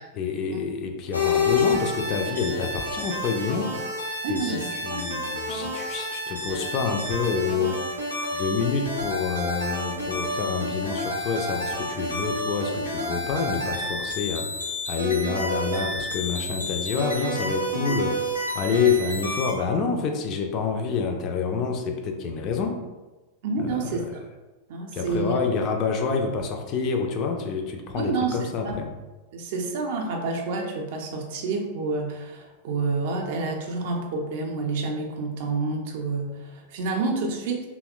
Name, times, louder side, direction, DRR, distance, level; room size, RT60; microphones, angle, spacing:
voice 1, 0.1-3.7 4.3-8.1 8.3-22.8 23.6-23.9 24.9-28.9, left 5 dB, 35° left, 4 dB, 0.3 m, -27 dB
sound 1, 1.1-19.5, left 2 dB, 90° left, 0.5 m, -29 dB
voice 2, 4.2-5.2 23.4-24.2 24.7-25.4 27.9-28.4 28.6-28.8 29.3-37.7, right 3 dB, 50° right, 1 dB, 0.4 m, -29 dB
2.8 x 2.0 x 2.3 m, 1.2 s
figure-of-eight pair, 90°, 0 cm